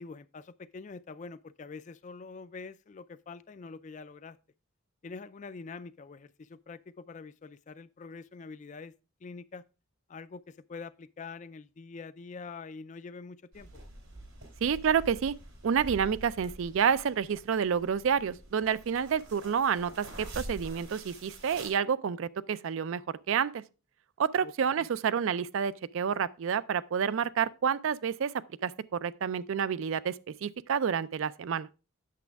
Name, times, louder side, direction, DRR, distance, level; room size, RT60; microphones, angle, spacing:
voice 1, 0.0-4.4 5.0-8.9 9.2-9.6 10.1-13.7 24.4-24.9, left 4 dB, 35° left, 0.3 m, -45 dB
sound 1, 13.5-21.7, right 1 dB, 90° right, 2.9 m, -46 dB
voice 2, 14.6-15.3 15.6-23.0 23.3-23.6 24.2-28.3 28.6-31.7, right 7 dB, 65° right, 0.4 m, -29 dB
8.4 x 6.8 x 3.4 m
head